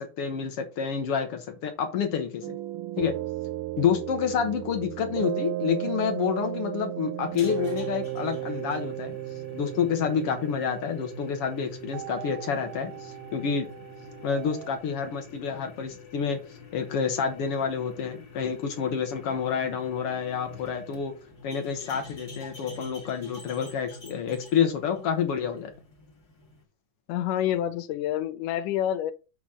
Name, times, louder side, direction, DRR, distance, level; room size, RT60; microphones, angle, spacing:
voice 1, 0.0-2.6 3.0-3.2 3.8-9.2 9.5-13.7 14.2-21.1 21.4-25.7, left 7 dB, 60° left, 1.6 m, -28 dB
sound 1, 2.4-14.8, right 15 dB, 80° right, 2.1 m, -35 dB
sound 2, 7.2-26.6, left 4 dB, 35° left, 2.3 m, -47 dB
voice 2, 27.1-29.1, left 11 dB, 85° left, 2.2 m, -28 dB
7.2 x 4.0 x 6.3 m
omnidirectional pair, 3.7 m